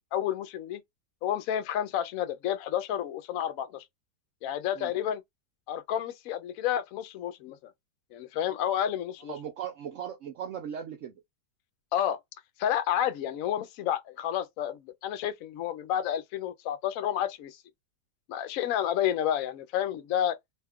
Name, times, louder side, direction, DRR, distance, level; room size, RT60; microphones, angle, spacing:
voice 1, 0.1-0.8 1.2-3.8 4.4-5.2 5.7-7.7 8.1-9.3 11.9-12.2 12.6-17.6 18.3-20.4, left 10 dB, 70° left, 0.9 m, -30 dB
voice 2, 9.3-11.1, right 9 dB, 70° right, 0.8 m, -38 dB
2.8 x 2.2 x 3.5 m
omnidirectional pair, 1.7 m